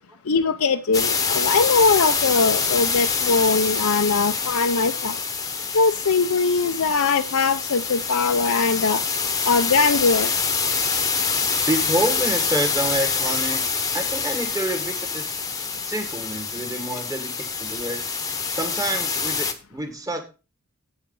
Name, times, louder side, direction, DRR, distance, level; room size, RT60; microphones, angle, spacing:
voice 1, 0.3-5.2 5.7-9.0 9.4-10.3, left 4 dB, 80° left, 7 dB, 0.7 m, -21 dB
sound 1, 0.9-19.5, left 5 dB, 15° left, 1.1 m, -25 dB
voice 2, 11.7-13.6 13.9-15.4 15.8-18.0 18.5-20.2, right 1 dB, 15° right, 6 dB, 1.7 m, -28 dB
8.5 x 7.2 x 5.4 m, 0.32 s
head